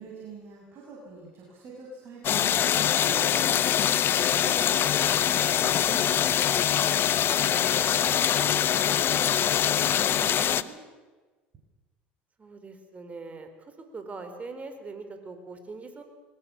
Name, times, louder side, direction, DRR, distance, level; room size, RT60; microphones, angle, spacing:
voice 1, 0.0-2.6 3.0-6.1 7.2-7.7 8.0-9.4 9.7-10.8, right 4 dB, 45° right, -3 dB, 7.0 m, -44 dB
sound 1, 2.2-10.6, left 10 dB, 45° left, 0.9 m, -23 dB
voice 2, 12.4-16.0, right 3 dB, 25° right, 7 dB, 4.4 m, -42 dB
22.0 x 19.5 x 7.2 m, 1.3 s
hypercardioid pair, 80°, 5 cm